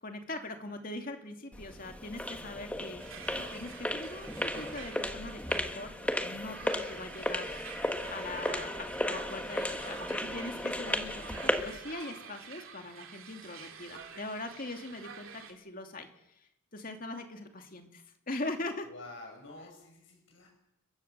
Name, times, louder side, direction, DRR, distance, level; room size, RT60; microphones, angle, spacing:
voice 1, 0.0-5.9 6.2-7.5 8.1-16.1 16.4-18.9, left 2 dB, 45° left, 4 dB, 2.6 m, -41 dB
sound 1, 1.5-11.8, left 1 dB, 5° left, 1.5 m, -35 dB
sound 2, 3.0-15.5, right 6 dB, 85° right, 2.7 m, -48 dB
voice 2, 18.8-20.5, left 2 dB, 70° left, 1 dB, 6.6 m, -48 dB
30.0 x 15.5 x 6.8 m, 0.85 s
head